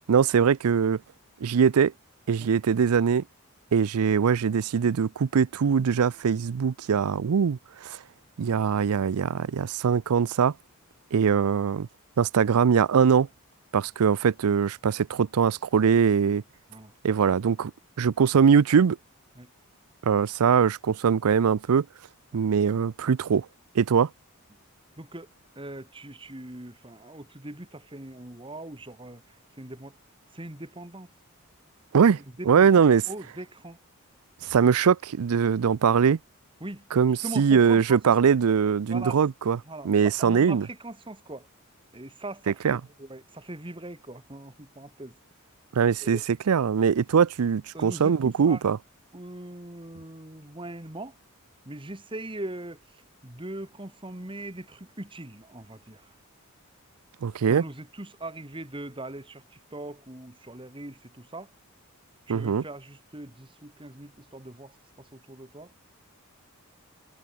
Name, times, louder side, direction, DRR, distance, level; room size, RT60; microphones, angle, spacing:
voice 1, 0.1-1.0 1.4-1.9 2.3-3.2 3.7-8.0 8.4-10.5 11.1-11.9 12.2-13.3 13.7-16.4 17.0-17.7 18.0-19.0 20.0-21.9 22.3-23.5 23.7-24.1 31.9-32.2 32.5-33.0 34.4-36.2 36.9-39.6 39.8-40.7 42.5-42.8 45.7-46.2 46.5-48.8 57.2-57.6 62.3-62.6, right 6 dB, 80° right, 0.4 m, -22 dB
voice 2, 25.0-25.3 25.6-29.2 29.6-30.0 30.3-31.1 32.4-33.8 36.6-36.9 37.2-38.2 38.9-39.2 39.6-41.5 41.9-45.2 46.0-46.2 47.7-48.6 49.1-51.1 51.7-52.8 53.2-56.0 57.5-61.5 62.3-65.7, right 1 dB, 20° right, 1.9 m, -40 dB
head